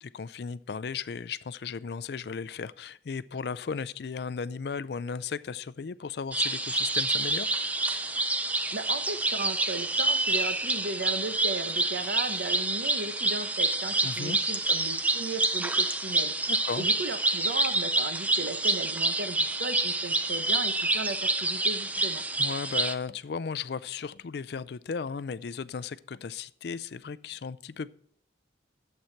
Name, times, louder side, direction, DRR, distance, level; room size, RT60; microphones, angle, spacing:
voice 1, 0.0-7.5 14.0-14.4 16.5-16.9 22.4-27.9, left 5 dB, 65° left, 17 dB, 0.4 m, -35 dB
sound 1, 6.3-22.9, right 2 dB, 10° right, 0.4 m, -28 dB
voice 2, 8.7-16.5 16.8-22.2, right 3 dB, 75° right, 10 dB, 0.9 m, -36 dB
11.5 x 7.8 x 4.5 m, 0.66 s
head